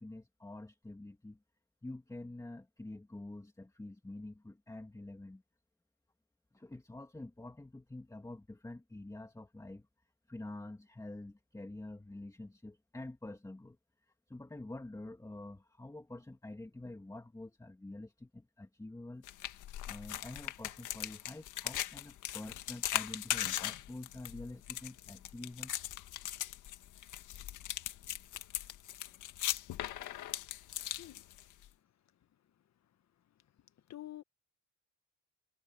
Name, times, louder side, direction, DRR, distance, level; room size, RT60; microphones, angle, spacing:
voice 1, 0.0-1.4 1.8-5.4 6.5-9.9 10.3-13.8 14.3-19.2 19.8-25.7, left 2 dB, 10° left, 2.3 m, -47 dB
sound 1, 19.2-31.7, left 12 dB, 80° left, 1.9 m, -39 dB
voice 2, 33.9-34.2, left 13 dB, 60° left, 1.4 m, -46 dB
cardioid pair, 90°, 30 cm